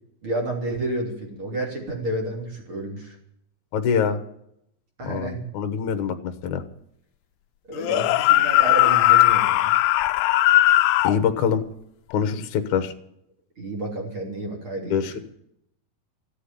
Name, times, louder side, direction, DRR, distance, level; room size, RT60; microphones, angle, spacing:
voice 1, 0.2-3.2 5.0-5.4 7.7-9.7 13.6-15.2, right 1 dB, 35° right, 0 dB, 3.6 m, -30 dB
voice 2, 3.7-4.2 5.0-6.6 11.0-11.6 12.1-12.9 14.9-15.1, left 7 dB, 65° left, 7 dB, 2.2 m, -24 dB
sound 1, 7.8-11.2, left 16 dB, 85° left, 2.8 m, -18 dB
15.0 x 8.5 x 9.9 m, 0.74 s
omnidirectional pair, 4.6 m